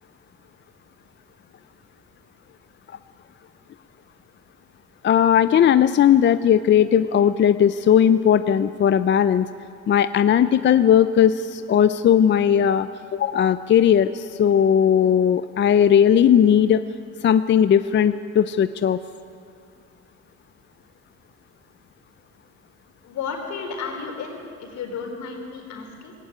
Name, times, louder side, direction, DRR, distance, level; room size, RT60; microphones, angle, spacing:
voice 1, 5.0-9.5 9.9-16.8 17.2-19.0, left 9 dB, 40° left, 12 dB, 0.5 m, -17 dB
voice 2, 23.1-26.1, left 5 dB, 75° left, 2 dB, 4.7 m, -33 dB
19.5 x 18.5 x 9.4 m, 2.4 s
cardioid pair, 125°, 29 cm